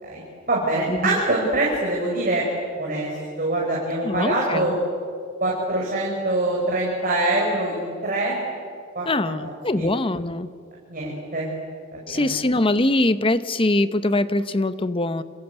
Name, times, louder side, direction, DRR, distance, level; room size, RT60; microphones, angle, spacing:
voice 1, 0.0-2.4 2.8-3.1 3.4-4.8 5.4-8.4 9.0-9.9 10.9-11.5 11.9-12.4, right 2 dB, 40° right, -3 dB, 5.4 m, -24 dB
voice 2, 0.9-1.2 4.0-4.8 9.1-10.5 12.1-15.2, left 2 dB, 25° left, 13 dB, 0.9 m, -23 dB
27.5 x 26.5 x 8.1 m, 2.2 s
head